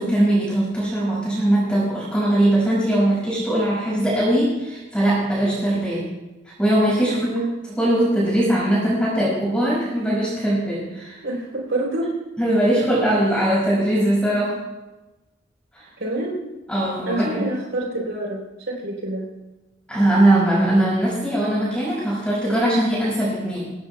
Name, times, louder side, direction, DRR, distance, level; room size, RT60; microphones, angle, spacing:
voice 1, 0.0-6.1 6.4-7.3 7.8-11.2 12.4-14.6 15.7-15.9 16.7-17.5 19.9-23.7, right 1 dB, 5° left, -6 dB, 5.8 m, -20 dB
voice 2, 7.0-7.5 11.2-12.1 16.0-16.4 17.1-19.3, right 1 dB, 80° right, -2 dB, 3.8 m, -27 dB
23.0 x 17.5 x 2.3 m, 1.1 s
head